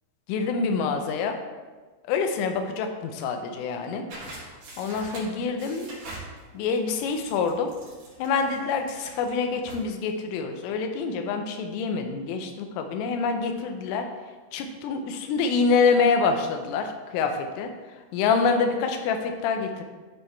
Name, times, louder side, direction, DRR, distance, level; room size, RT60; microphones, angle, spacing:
voice 1, 0.3-1.4 2.1-4.0 4.8-5.9 6.5-7.7 8.2-14.1 14.5-17.7 18.1-19.8, left 5 dB, 90° left, 5 dB, 3.3 m, -26 dB
sound 1, 4.1-9.9, right 2 dB, 50° right, 3.5 m, -44 dB
12.5 x 4.7 x 3.3 m, 1.3 s
omnidirectional pair, 5.7 m